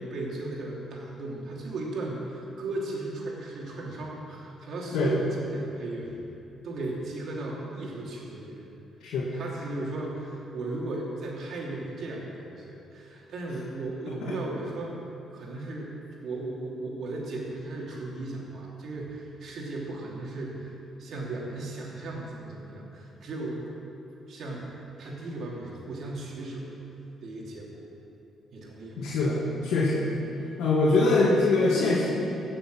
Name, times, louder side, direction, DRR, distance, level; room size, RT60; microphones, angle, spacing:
voice 1, 0.0-6.2 6.6-8.7 9.3-15.0 15.3-15.9 16.2-20.7 21.0-23.7 24.3-26.8 27.2-27.9 28.5-29.1, right 2 dB, 65° right, -3 dB, 2.9 m, -36 dB
voice 2, 29.0-30.1 30.6-32.1, left 2 dB, 85° left, -6 dB, 2.0 m, -23 dB
16.5 x 6.8 x 6.3 m, 2.9 s
cardioid pair, 90°, 0 cm